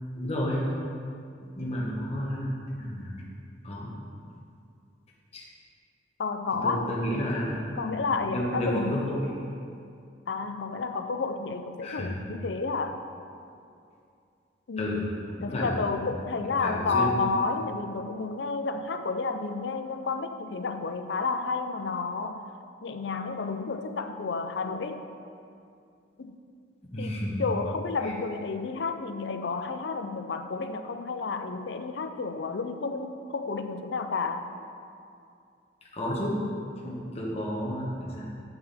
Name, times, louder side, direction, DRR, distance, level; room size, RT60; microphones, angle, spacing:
voice 1, 0.2-0.6 1.5-2.5 2.7-3.1 3.6-3.9 5.3-5.5 6.6-7.7 8.3-9.2 11.8-12.1 14.8-15.0 15.4-15.7 16.1-16.2 16.6-17.2 26.9-27.4 28.0-28.1 35.9-36.4 36.8-38.2, equal, 35° left, -4 dB, 1.4 m, -31 dB
voice 2, 6.2-6.9 7.8-9.1 10.3-13.0 14.7-15.1 15.4-22.5 22.8-25.0 26.2-26.3 27.0-34.5, left 4 dB, 70° left, 8 dB, 0.5 m, -31 dB
8.9 x 6.7 x 4.2 m, 2.4 s
head